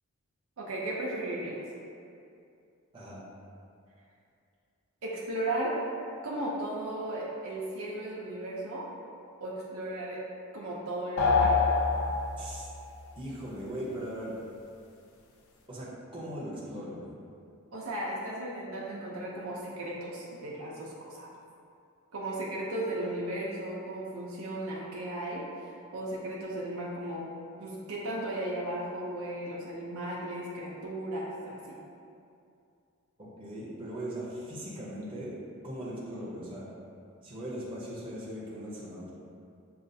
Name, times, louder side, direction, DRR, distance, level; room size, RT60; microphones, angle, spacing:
voice 1, 0.6-1.6 5.0-5.8 6.2-8.9 9.4-10.2 10.5-11.6 17.7-21.3 22.1-27.3 27.6-31.8, right 1 dB, 75° right, -5 dB, 0.5 m, -35 dB
sound 1, 11.2-12.7, left 4 dB, 75° left, 0.4 m, -25 dB
voice 2, 12.4-12.7 13.1-14.4 15.7-17.1 33.4-35.4 35.6-36.7 37.2-39.1, equal, 25° right, -8 dB, 0.6 m, -39 dB
6.3 x 2.4 x 2.6 m, 2.5 s
head